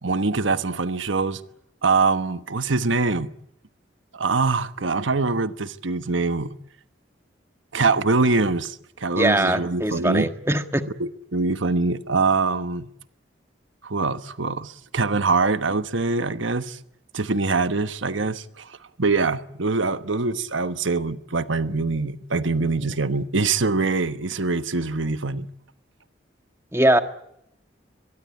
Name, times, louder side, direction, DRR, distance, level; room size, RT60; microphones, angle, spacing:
voice 1, 0.0-1.4 1.8-3.3 4.1-6.6 7.7-10.3 11.0-12.9 13.8-16.8 17.1-25.5, right 3 dB, 85° right, 1.2 m, -24 dB
voice 2, 9.2-10.9 26.7-27.0, right 1 dB, 15° right, 1.6 m, -21 dB
23.5 x 22.5 x 8.4 m
head